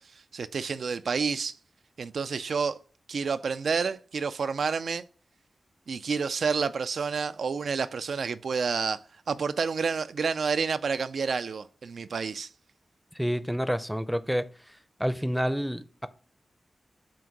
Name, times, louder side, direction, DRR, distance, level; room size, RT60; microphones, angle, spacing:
voice 1, 0.3-1.6 2.0-2.8 3.1-5.0 5.9-9.0 9.3-12.5, right 5 dB, 80° right, 0.3 m, -29 dB
voice 2, 13.2-14.5 15.0-16.1, equal, ahead, 0.5 m, -28 dB
7.5 x 2.6 x 5.8 m
cardioid pair, 55°, 0 cm